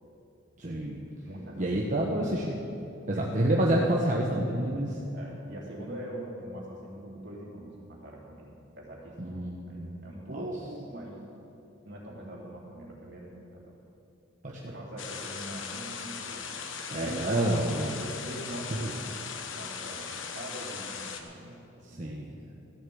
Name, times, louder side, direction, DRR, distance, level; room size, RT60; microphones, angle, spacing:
voice 1, 0.6-1.0 1.6-2.5 3.1-5.0 9.2-9.9 10.3-10.4 14.4-14.5 16.9-17.9 21.9-22.3, right 1 dB, 40° right, -2 dB, 1.1 m, -28 dB
voice 2, 1.2-1.9 2.2-2.4 3.1-3.9 5.1-8.5 8.7-11.2 11.8-13.7 14.7-16.5 17.4-19.1 19.5-21.6 21.9-22.2, right 1 dB, 65° right, -3 dB, 3.2 m, -42 dB
sound 1, 15.0-21.2, left 6 dB, 75° left, 1.1 m, -39 dB
14.0 x 7.4 x 8.6 m, 2.8 s
head